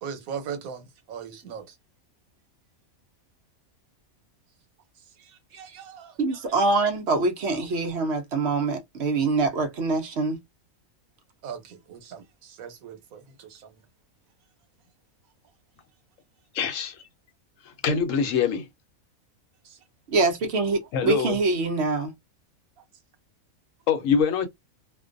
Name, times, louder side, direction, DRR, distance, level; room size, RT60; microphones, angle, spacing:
voice 1, 0.0-1.8 5.0-6.4 11.4-13.9 19.6-19.9, right 7 dB, 85° right, 1.2 m, -40 dB
voice 2, 6.2-10.4 20.1-22.1, right 3 dB, 60° right, 0.8 m, -24 dB
voice 3, 16.5-17.0 17.6-18.7 20.9-21.4 23.9-24.5, left 6 dB, 70° left, 0.9 m, -24 dB
2.5 x 2.2 x 2.4 m
omnidirectional pair, 1.4 m